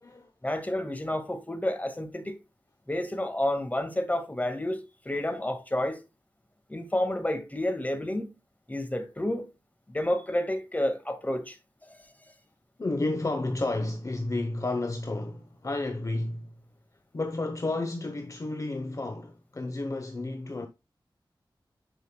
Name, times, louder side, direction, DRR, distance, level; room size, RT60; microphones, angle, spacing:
voice 1, 0.4-2.3 2.9-6.0 6.7-8.3 8.7-9.5 9.9-11.6, left 1 dB, 20° left, 1.7 m, -30 dB
voice 2, 12.8-16.6 17.1-20.7, left 2 dB, 40° left, 0.8 m, -31 dB
9.9 x 5.5 x 2.2 m
wide cardioid pair, 80°, 9 cm